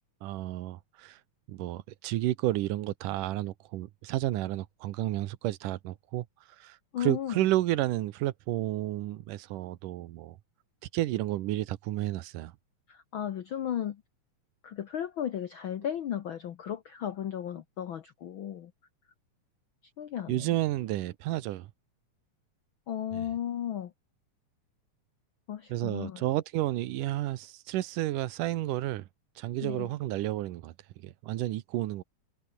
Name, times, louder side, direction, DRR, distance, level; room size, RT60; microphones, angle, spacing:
voice 1, 0.2-1.2 1.5-6.3 6.6-10.4 10.9-12.5 20.3-21.7 23.1-23.3 25.7-29.0 29.4-30.7 31.0-32.0, right 15 dB, 85° right, 2.5 m, -31 dB
voice 2, 6.9-7.5 12.9-14.0 14.6-18.7 20.0-20.5 22.9-23.9 25.5-26.2 29.6-29.9, left 10 dB, 70° left, 1.2 m, -35 dB
omnidirectional pair, 3.6 m